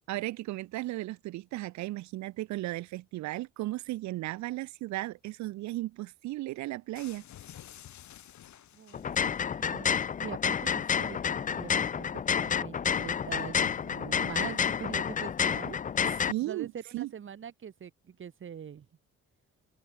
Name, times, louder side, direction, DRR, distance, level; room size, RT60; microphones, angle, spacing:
voice 1, 0.0-7.2 16.3-17.1, right 17 dB, 70° right, 0.4 m, -35 dB
sound 1, 6.9-9.4, left 11 dB, 70° left, 3.1 m, -50 dB
voice 2, 8.7-15.8 16.4-18.9, right 8 dB, 40° right, 1.3 m, -43 dB
sound 2, 8.9-16.3, left 7 dB, 25° left, 0.4 m, -29 dB
cardioid pair, 90°, 30 cm